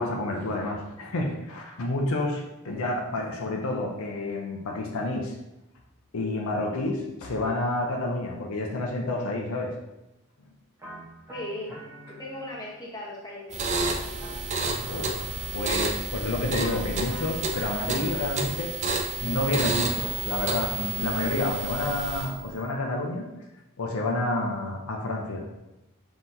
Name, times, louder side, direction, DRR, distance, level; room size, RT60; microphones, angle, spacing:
voice 1, 0.0-5.3 6.1-9.8 14.8-15.1 15.5-18.7 19.2-23.3 23.8-25.5, left 2 dB, 70° left, 1 dB, 0.5 m, -29 dB
sound 1, 10.8-12.9 13.7-16.1 16.6-18.7 19.5-21.9, right 1 dB, 10° right, 0.8 m, -44 dB
voice 2, 11.3-11.7 12.1-14.0, left 1 dB, 15° left, -5 dB, 0.9 m, -38 dB
sound 2, 13.5-22.4, right 3 dB, 30° right, 0.4 m, -30 dB
5.6 x 2.9 x 2.6 m, 0.93 s
head